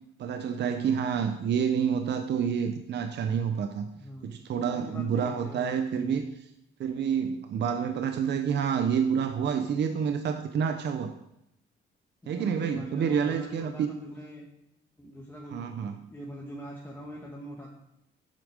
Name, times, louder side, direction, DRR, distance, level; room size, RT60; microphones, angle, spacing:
voice 1, 0.2-3.9 4.2-6.3 6.8-11.1 12.3-13.9 15.5-16.0, right 7 dB, 60° right, 7 dB, 0.7 m, -28 dB
voice 2, 4.0-6.3 12.2-14.5 15.0-17.7, equal, 10° left, -3 dB, 1.6 m, -43 dB
8.5 x 6.3 x 4.9 m, 0.83 s
cardioid pair, 90°, 20 cm